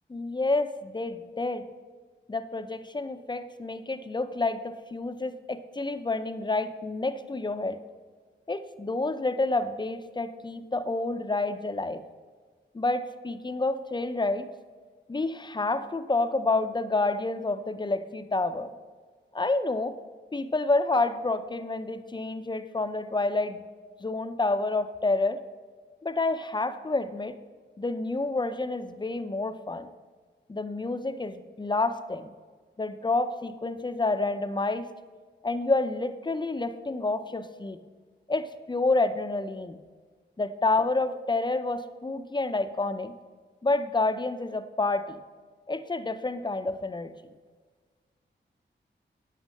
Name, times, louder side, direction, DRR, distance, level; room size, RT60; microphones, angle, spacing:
voice 1, 0.1-1.6 2.3-7.8 8.5-12.0 12.7-14.5 15.1-18.7 19.3-20.0 20.3-23.6 24.0-25.4 26.0-27.3 27.8-29.9 30.5-32.3 32.8-34.9 35.4-37.8 38.3-39.8 40.4-43.2 43.6-45.2 45.7-47.1, left 2 dB, 25° left, 10 dB, 0.6 m, -29 dB
9.1 x 8.2 x 6.3 m, 1.5 s
wide cardioid pair, 100°, 19 cm